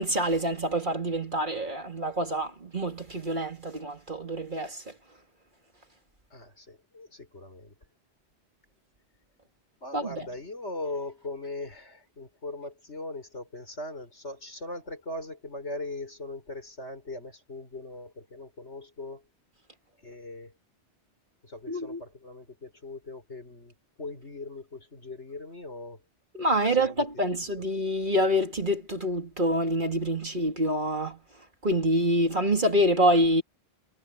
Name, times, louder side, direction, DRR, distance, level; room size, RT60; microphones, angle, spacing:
voice 1, 0.0-4.8 9.9-10.3 21.7-22.0 26.3-31.2 31.6-33.4, equal, 45° right, 2.9 m, -26 dB
voice 2, 6.3-7.7 9.8-19.2 20.0-20.5 21.4-26.0 26.7-27.0, left 2 dB, 80° left, 5.8 m, -40 dB
omnidirectional pair, 1.2 m